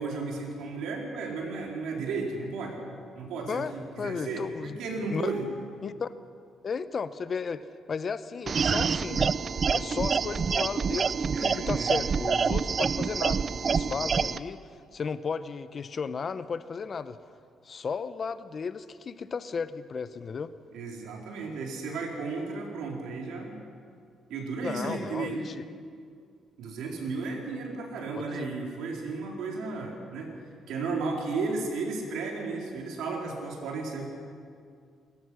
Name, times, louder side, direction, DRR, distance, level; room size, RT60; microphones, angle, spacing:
voice 1, 0.0-2.8 3.1-5.5 11.3-12.0 20.7-23.5 24.3-25.4 26.6-30.3 30.7-34.1, right 3 dB, 85° right, 0 dB, 4.0 m, -34 dB
voice 2, 4.0-4.8 5.1-5.3 5.8-6.1 6.6-9.3 9.7-14.6 14.9-17.2 17.6-20.5 24.6-25.6 28.1-28.5, left 5 dB, 45° left, 14 dB, 0.8 m, -34 dB
sound 1, 8.5-14.4, right 5 dB, 45° right, 0.5 m, -27 dB
28.5 x 14.5 x 6.3 m, 2.3 s
cardioid pair, 90°, 0 cm